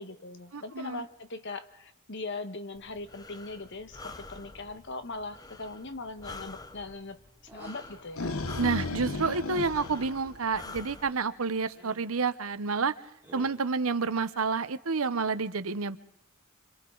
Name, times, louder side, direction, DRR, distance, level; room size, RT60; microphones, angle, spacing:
voice 1, 0.0-7.2 7.4-8.3, left 3 dB, 60° left, 10 dB, 1.2 m, -40 dB
voice 2, 0.5-1.0 8.6-12.9 13.3-16.0, right 4 dB, 80° right, 12 dB, 0.9 m, -29 dB
Breathing, 2.7-11.1, left 3 dB, 20° left, 0.7 m, -48 dB
sound 1, 7.5-8.0 9.5-10.0 11.0-11.4 11.7-12.2 13.2-13.8, right 1 dB, 10° right, 2.2 m, -52 dB
sound 2, 7.8-11.1, left 3 dB, 80° left, 1.0 m, -35 dB
27.0 x 26.0 x 3.9 m, 0.77 s
head